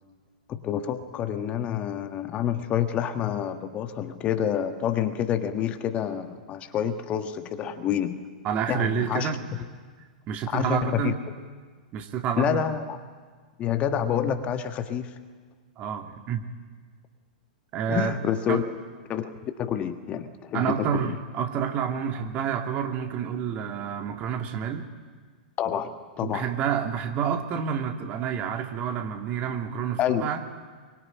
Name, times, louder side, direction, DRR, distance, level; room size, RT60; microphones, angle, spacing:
voice 1, 0.5-8.3 8.7-9.3 10.5-11.1 12.4-13.0 13.6-15.2 17.9-18.7 19.1-21.2 25.6-26.4 30.0-30.3, left 9 dB, 30° left, 8 dB, 1.6 m, -28 dB
voice 2, 8.4-9.4 10.3-11.2 11.9-12.6 15.8-16.4 17.7-18.1 18.5-18.6 20.5-24.9 26.2-30.4, right 8 dB, 30° right, 5 dB, 2.5 m, -29 dB
24.5 x 23.5 x 10.0 m, 1.5 s
figure-of-eight pair, 100°, 4 cm